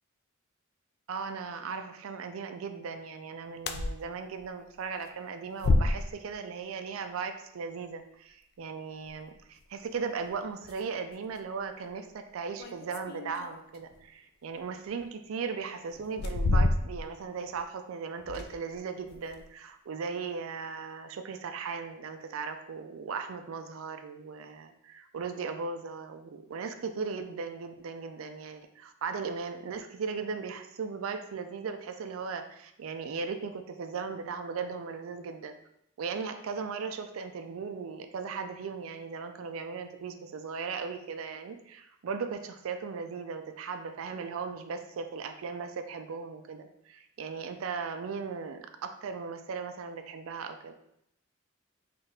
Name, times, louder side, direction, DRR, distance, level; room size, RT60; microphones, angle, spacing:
voice 1, 1.1-35.6 36.0-50.7, right 5 dB, 75° right, 7 dB, 0.4 m, -37 dB
sound 1, 3.6-4.0 4.4-4.5 5.6-6.3 9.0-9.1 10.2-10.3 10.6-10.8 11.4-11.5 12.6-14.0 15.0-15.1 16.0-17.2 17.5-17.6 18.2-18.8 19.1-19.5, left 2 dB, 50° left, 0.3 m, -28 dB
4.4 x 2.4 x 3.2 m, 0.76 s
head